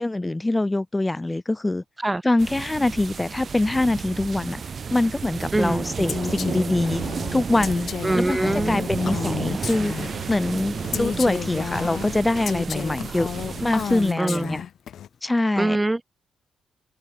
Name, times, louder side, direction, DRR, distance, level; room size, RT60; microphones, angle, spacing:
voice 1, 0.0-1.8 2.2-4.6 4.9-7.0 7.3-9.9 10.3-13.3 13.6-14.6 15.2-15.8, left 2 dB, 15° left, 1.4 m, -24 dB
Thunder storm, 2.4-14.1, right 6 dB, 45° right, 4.2 m, -32 dB
voice 2, 5.5-5.9 8.0-9.0 14.2-14.6 15.6-16.0, right 2 dB, 10° right, 1.0 m, -24 dB
Female speech woman speaking, 6.1-10.3 10.9-14.9, left 7 dB, 50° left, 0.7 m, -31 dB
sound 1, 9.0-9.3 9.8-15.1, left 10 dB, 75° left, 3.6 m, -42 dB
cardioid pair, 120°, 0 cm